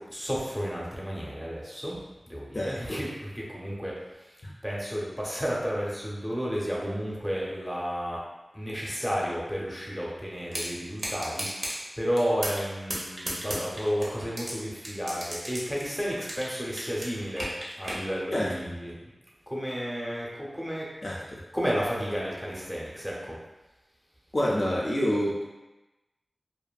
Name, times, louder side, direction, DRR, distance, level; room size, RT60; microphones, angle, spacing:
voice 1, 0.0-2.0 2.3-3.1 3.5-3.9 4.6-8.2 8.5-18.9 19.5-20.9 21.5-23.4, equal, ahead, -5 dB, 0.6 m, -32 dB
voice 2, 2.5-3.0 4.4-4.5 18.3-18.7 21.0-21.4 24.3-25.4, equal, 45° left, -4 dB, 0.4 m, -28 dB
sound 1, 10.5-10.7 11.0-11.8 12.2-12.6 12.9-14.5 14.8-16.5 16.8-18.0, right 1 dB, 65° right, 0.7 m, -33 dB
2.6 x 2.4 x 2.3 m, 1.0 s
wide cardioid pair, 80°, 0 cm